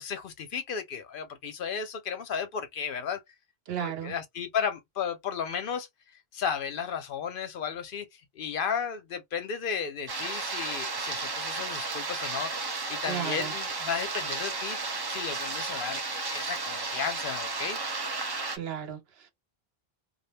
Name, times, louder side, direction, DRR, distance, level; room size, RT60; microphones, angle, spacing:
voice 1, 0.0-3.2 3.8-5.9 6.3-17.8, left 7 dB, 65° left, 0.7 m, -34 dB
voice 2, 3.7-4.2 13.1-13.5 18.6-19.3, right 9 dB, 75° right, 0.9 m, -34 dB
sound 1, 10.1-18.6, right 3 dB, 40° right, 0.4 m, -33 dB
2.3 x 2.1 x 3.2 m
omnidirectional pair, 1.0 m